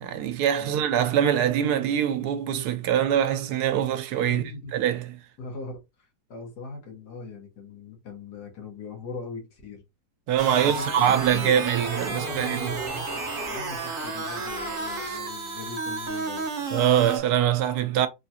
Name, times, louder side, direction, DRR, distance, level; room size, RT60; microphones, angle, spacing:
voice 1, 0.0-4.4 4.7-5.2 10.3-12.7 16.7-18.1, right 10 dB, 75° right, 1.1 m, -23 dB
voice 2, 4.3-4.7 5.4-9.8 10.5-11.8 12.1-16.5, left 3 dB, 75° left, 1.7 m, -40 dB
sound 1, 10.4-17.2, right 3 dB, 50° right, 0.7 m, -32 dB
3.7 x 2.3 x 2.8 m
omnidirectional pair, 1.8 m